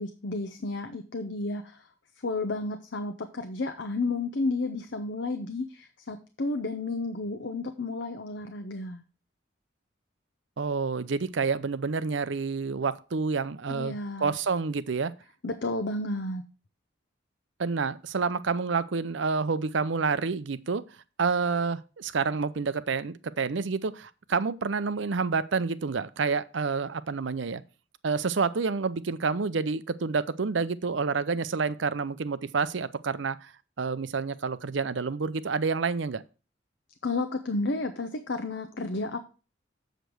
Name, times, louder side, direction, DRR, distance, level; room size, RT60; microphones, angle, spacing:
voice 1, 0.0-1.9 2.2-9.0 13.7-14.4 15.4-16.4 37.0-39.2, left 2 dB, 65° left, 0.8 m, -32 dB
voice 2, 10.6-15.1 17.6-20.8 21.2-27.6 28.0-33.5 33.8-36.2, right 4 dB, 70° right, 0.6 m, -28 dB
7.7 x 5.2 x 6.2 m
head